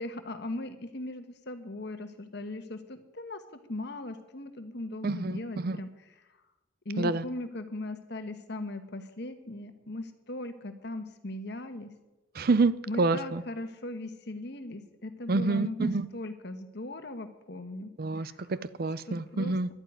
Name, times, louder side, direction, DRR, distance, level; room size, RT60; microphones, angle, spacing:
voice 1, 0.0-3.4 3.7-5.9 6.8-11.9 12.9-18.5 19.0-19.7, left 2 dB, 60° left, 1.4 m, -39 dB
voice 2, 5.0-5.8 7.0-7.2 12.3-13.4 15.3-16.1 18.0-19.7, right 3 dB, 50° right, 0.5 m, -28 dB
11.5 x 9.2 x 9.3 m
head